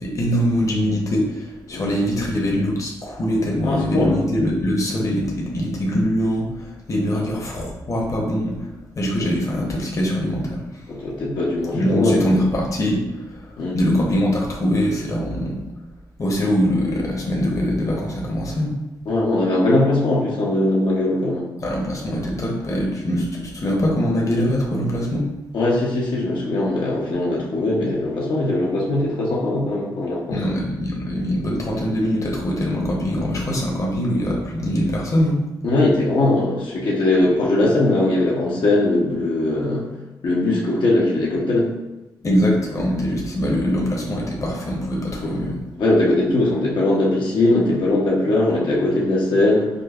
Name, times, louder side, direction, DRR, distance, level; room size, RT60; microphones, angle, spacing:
voice 1, 0.0-8.6 9.0-10.6 11.7-13.0 13.7-15.6 16.2-18.7 21.6-25.2 30.3-35.4 42.2-45.6, equal, 40° left, -2 dB, 0.8 m, -22 dB
voice 2, 3.6-4.2 7.1-7.2 9.2-9.3 10.9-12.2 13.6-13.8 19.1-21.5 25.5-30.5 35.6-39.9 40.2-41.7 45.2-45.4 45.8-49.7, left 2 dB, 75° left, -5 dB, 0.7 m, -20 dB
5.0 x 2.1 x 2.3 m, 0.99 s
cardioid pair, 90°, 8 cm